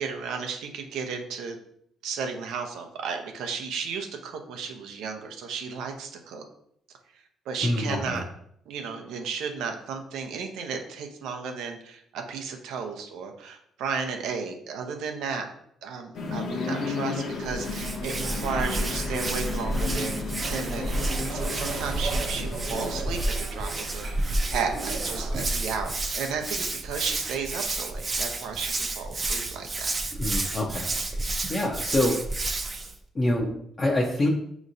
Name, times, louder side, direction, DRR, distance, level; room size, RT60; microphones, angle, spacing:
voice 1, 0.0-1.6 2.0-6.4 7.5-8.2 8.7-15.5 15.8-20.9 21.2-29.9 31.6-31.7, right 5 dB, 85° right, 4 dB, 0.6 m, -34 dB
voice 2, 7.6-8.2 30.1-32.4 33.1-34.3, left 1 dB, 30° left, -3 dB, 0.6 m, -27 dB
sound 1, 16.1-23.0, left 4 dB, 75° left, 0.7 m, -34 dB
sound 2, 17.4-25.8, right 2 dB, 60° right, 0.9 m, -36 dB
Hands, 17.5-32.9, right 2 dB, 30° right, 0.5 m, -31 dB
5.2 x 3.0 x 2.6 m, 0.71 s
cardioid pair, 90°, 0 cm